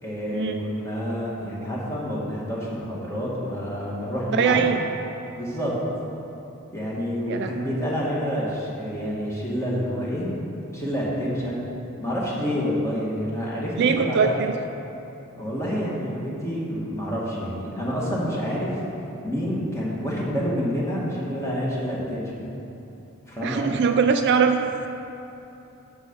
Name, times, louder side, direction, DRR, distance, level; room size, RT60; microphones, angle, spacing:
voice 1, 0.0-4.7 5.3-5.7 6.7-10.3 10.7-11.6 12.0-14.3 15.4-18.8 19.2-22.4 23.2-23.7, equal, 15° left, -6 dB, 1.8 m, -28 dB
voice 2, 4.3-4.8 7.3-7.5 13.8-14.5 23.4-24.6, right 6 dB, 50° right, 6 dB, 0.4 m, -21 dB
9.8 x 6.7 x 5.3 m, 2.9 s
head